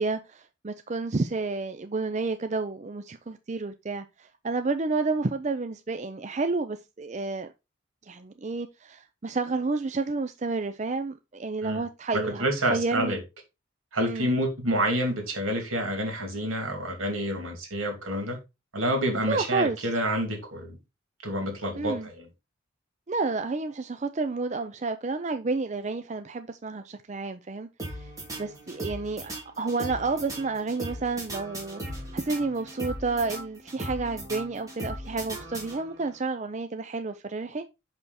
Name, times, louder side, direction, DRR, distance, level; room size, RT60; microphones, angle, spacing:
voice 1, 0.0-7.5 8.1-13.2 14.0-14.3 19.2-19.8 21.8-22.1 23.1-27.7 28.4-37.7, right 3 dB, 35° right, 0.5 m, -30 dB
voice 2, 12.4-13.2 13.9-18.4 18.7-20.8 21.2-22.3, right 1 dB, 85° right, 2.9 m, -28 dB
sound 1, 27.8-36.1, right 1 dB, 15° right, 2.5 m, -38 dB
6.1 x 5.4 x 4.1 m
head